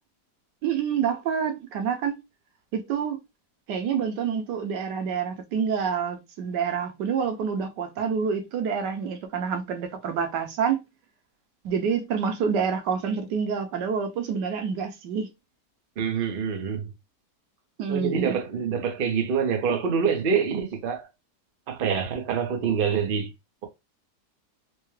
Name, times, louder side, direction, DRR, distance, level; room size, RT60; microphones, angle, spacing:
voice 1, 0.6-2.2 2.7-3.2 3.7-10.8 11.6-15.3 17.8-18.4, right 6 dB, 90° right, 1.4 m, -27 dB
voice 2, 16.0-16.9 17.9-21.0 21.7-23.3, right 6 dB, 45° right, 0.7 m, -26 dB
4.6 x 2.2 x 3.1 m
omnidirectional pair, 1.8 m